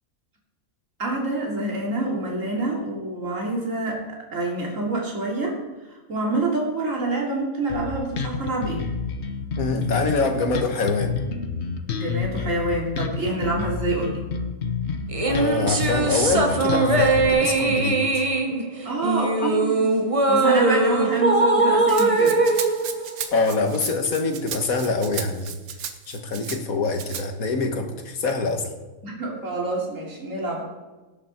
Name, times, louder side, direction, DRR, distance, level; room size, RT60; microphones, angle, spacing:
voice 1, 1.0-4.0 4.3-5.6 6.1-8.9 11.9-14.2 18.8-19.9 20.3-22.4 29.0-30.6, right 2 dB, 60° right, -2 dB, 3.3 m, -27 dB
Bass guitar, 7.7-17.3, left 5 dB, 50° left, 1.2 m, -29 dB
voice 2, 9.6-11.2 15.2-18.2 23.3-25.6 26.1-28.7, left 3 dB, 75° left, 5 dB, 1.8 m, -25 dB
sound 1, 15.1-23.7, right 3 dB, 25° right, 1.0 m, -21 dB
Rattle (instrument), 21.9-26.6 27.0-27.3, right 7 dB, 80° right, 1.5 m, -35 dB
17.5 x 8.9 x 4.4 m, 1.2 s
omnidirectional pair, 1.5 m